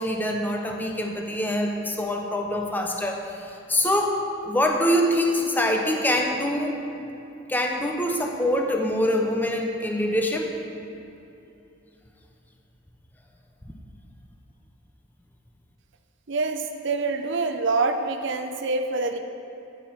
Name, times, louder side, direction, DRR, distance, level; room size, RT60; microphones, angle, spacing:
voice 1, 0.0-4.1 4.4-6.8 7.5-10.5, left 1 dB, 10° left, 1 dB, 0.8 m, -24 dB
voice 2, 16.3-19.2, right 3 dB, 60° right, 7 dB, 0.6 m, -26 dB
10.5 x 9.7 x 4.3 m, 2.8 s
head